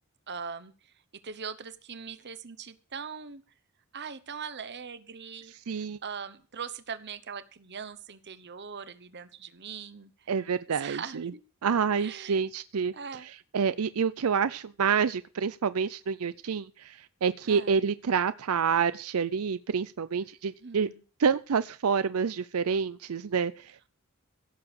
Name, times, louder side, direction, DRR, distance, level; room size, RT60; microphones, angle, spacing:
voice 1, 0.3-0.7 1.2-3.4 3.9-10.3 10.7-11.4 12.0-12.4 12.9-13.3 17.5-17.8 20.6-21.0, right 6 dB, 55° right, 14 dB, 1.0 m, -41 dB
voice 2, 5.5-6.0 10.3-11.3 11.6-12.9 13.2-20.9 21.2-23.9, right 6 dB, 80° right, 15 dB, 0.5 m, -28 dB
16.0 x 6.9 x 6.3 m, 0.39 s
head